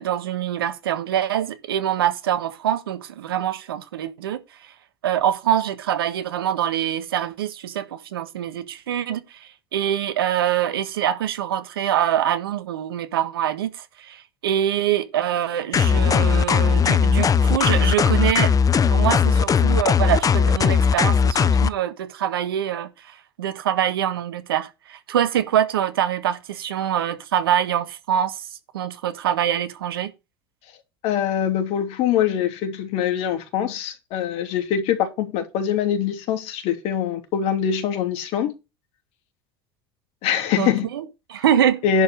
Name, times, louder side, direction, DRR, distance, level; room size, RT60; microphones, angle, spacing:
voice 1, 0.0-4.4 5.0-18.6 18.9-28.5 28.7-30.1 40.6-41.8, right 10 dB, 85° right, 1.4 m, -24 dB
sound 1, 15.7-21.7, left 6 dB, 30° left, 0.8 m, -18 dB
voice 2, 31.0-38.5 40.2-40.9 41.8-42.0, left 8 dB, 60° left, 3.0 m, -23 dB
11.0 x 5.2 x 6.3 m
hypercardioid pair, 75°, 12 cm